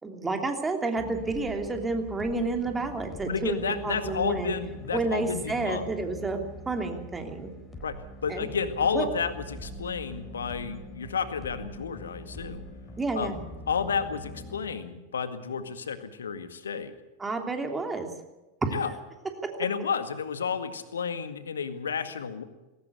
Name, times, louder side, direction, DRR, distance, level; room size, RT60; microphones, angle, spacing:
voice 1, 0.0-4.6 4.9-6.4 6.7-7.5 8.3-8.5 8.9-9.1 13.0-13.4 17.2-18.1 18.6-18.7, right 3 dB, 15° right, 4 dB, 3.0 m, -30 dB
sound 1, 1.0-14.6, equal, 15° left, 4.1 m, -43 dB
voice 2, 3.3-5.8 7.8-7.9 8.2-12.6 13.2-13.3 13.7-16.9 18.7-18.9 19.6-22.4, left 6 dB, 70° left, 10 dB, 1.9 m, -31 dB
19.5 x 18.0 x 8.2 m, 1.1 s
figure-of-eight pair, 90°, 0 cm